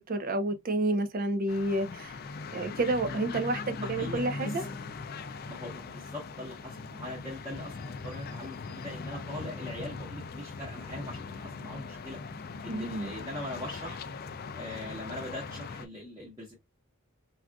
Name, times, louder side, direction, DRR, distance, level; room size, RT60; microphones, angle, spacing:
voice 1, 0.0-2.2 2.5-4.6 12.7-13.1, right 2 dB, 40° right, 0.5 m, -30 dB
sound 1, 1.5-15.9, left 4 dB, 45° left, 0.3 m, -40 dB
voice 2, 3.8-4.7 5.5-12.2 12.6-14.0 14.5-16.5, left 1 dB, 15° right, 1.0 m, -41 dB
3.6 x 2.4 x 2.2 m
head